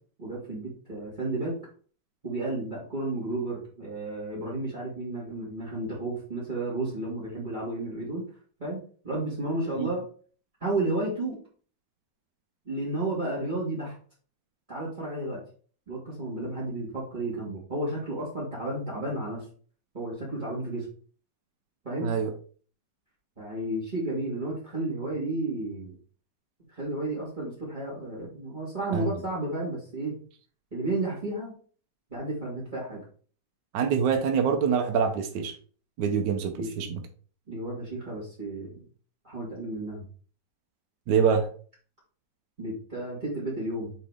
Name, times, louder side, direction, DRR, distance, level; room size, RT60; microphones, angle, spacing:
voice 1, 0.2-1.5 2.2-8.2 8.6-8.8 9.0-10.0 10.6-11.4 12.7-13.9 14.7-15.4 15.9-19.4 19.9-20.9 21.8-22.1 23.4-25.9 26.7-30.1 30.7-31.5 32.1-33.0 36.6-36.9 37.5-38.8 39.2-40.0 42.6-43.9, right 2 dB, 25° right, -6 dB, 2.3 m, -32 dB
voice 2, 33.7-35.5 36.0-37.0 41.1-41.5, right 6 dB, 70° right, 5 dB, 1.3 m, -25 dB
8.8 x 3.6 x 3.5 m, 0.43 s
omnidirectional pair, 2.0 m